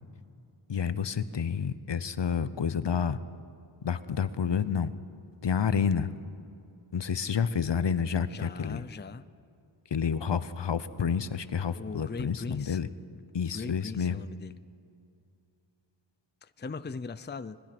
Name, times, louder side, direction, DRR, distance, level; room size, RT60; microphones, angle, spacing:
voice 1, 0.7-3.2 3.8-4.9 5.4-6.1 6.9-8.8 9.9-12.9 13.3-14.2, left 7 dB, 60° left, 14 dB, 0.9 m, -29 dB
voice 2, 8.3-9.3 11.7-12.8 13.1-13.2 13.5-14.5 16.4-17.6, left 4 dB, 20° left, 14 dB, 0.6 m, -39 dB
26.5 x 20.5 x 6.1 m, 2.7 s
wide cardioid pair, 65°, 48 cm